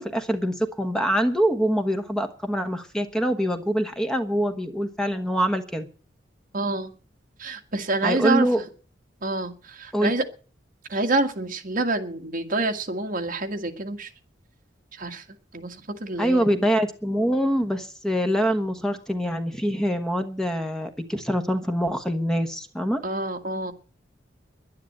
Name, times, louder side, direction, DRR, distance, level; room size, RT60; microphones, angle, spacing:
voice 1, 0.0-5.9 8.0-8.6 9.9-10.1 16.2-23.0, equal, 5° left, 5 dB, 1.2 m, -24 dB
voice 2, 6.5-6.9 7.4-8.5 9.2-10.2 10.9-14.1 15.0-15.2 15.5-15.7 16.0-16.4 23.0-23.7, right 2 dB, 50° right, 4 dB, 1.7 m, -27 dB
11.0 x 10.5 x 8.7 m, 0.39 s
head